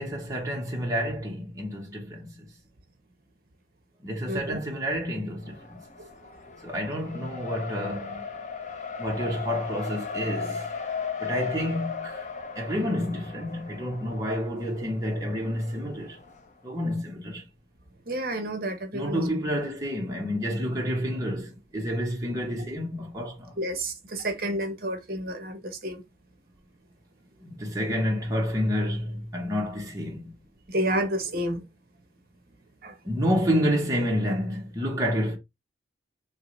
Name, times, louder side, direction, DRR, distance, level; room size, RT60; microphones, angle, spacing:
voice 1, 0.0-2.5 4.0-5.8 6.6-8.2 9.0-10.7 11.2-12.3 12.5-16.2 16.6-17.4 18.9-23.6 27.4-30.3 33.0-35.4, equal, 20° right, 0.8 m, -29 dB
voice 2, 4.3-4.6 6.0-6.1 18.1-19.2 23.6-26.0 30.7-31.6 32.8-32.9, right 1 dB, 50° right, 0.8 m, -30 dB
Race car auto racing, 5.4-16.4, left 5 dB, 40° left, 0.6 m, -37 dB
4.4 x 3.0 x 3.1 m
head